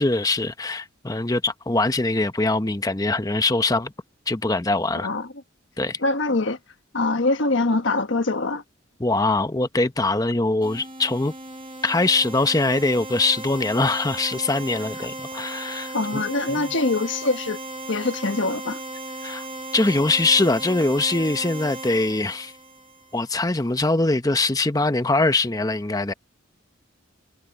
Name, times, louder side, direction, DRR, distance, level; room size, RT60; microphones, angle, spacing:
voice 1, 0.0-3.9 4.3-5.1 5.8-6.0 9.0-11.3 11.8-16.2 16.5-16.6 19.2-19.4 19.7-22.5 23.1-26.1, left 2 dB, 20° left, 0.8 m, -22 dB
voice 2, 6.0-6.6 6.9-8.6 15.9-17.6 17.9-18.8, left 2 dB, 70° left, 1.3 m, -23 dB
sound 1, 10.6-23.3, right 2 dB, 25° right, 1.4 m, -36 dB
head